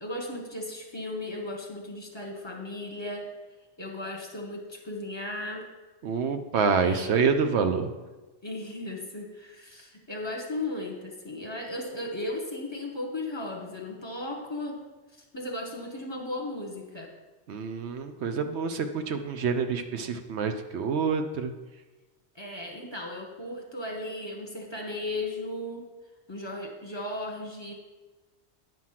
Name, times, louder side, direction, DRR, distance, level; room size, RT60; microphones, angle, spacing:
voice 1, 0.0-3.3 3.8-5.7 6.8-7.1 8.4-14.9 15.1-17.1 22.3-25.9 26.3-27.7, left 1 dB, 25° left, 0 dB, 1.3 m, -36 dB
voice 2, 6.0-7.9 17.5-21.5, right 5 dB, 70° right, 8 dB, 0.9 m, -27 dB
9.3 x 6.0 x 5.7 m, 1.2 s
omnidirectional pair, 1.2 m